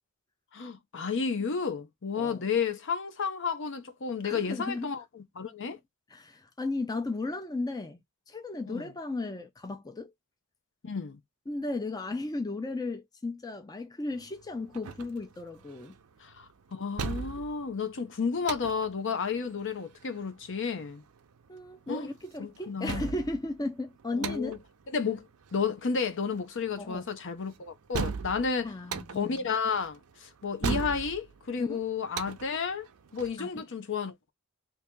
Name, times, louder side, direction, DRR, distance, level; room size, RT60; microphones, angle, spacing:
voice 1, 0.5-5.0 5.3-5.8 8.7-8.9 10.8-11.2 16.2-21.0 21.9-22.1 22.4-23.0 24.1-24.6 24.9-28.7 29.1-32.9 33.1-34.1, left 5 dB, 55° left, 0.6 m, -32 dB
voice 2, 2.2-2.5 4.2-4.9 5.7-5.8 6.1-8.0 8.3-10.1 11.5-15.9 21.5-24.6 26.8-27.0 28.6-29.4 31.6-31.8 33.4-33.6, left 2 dB, 15° left, 0.4 m, -35 dB
sound 1, 14.1-33.4, right 5 dB, 75° right, 0.5 m, -39 dB
2.8 x 2.8 x 3.5 m
head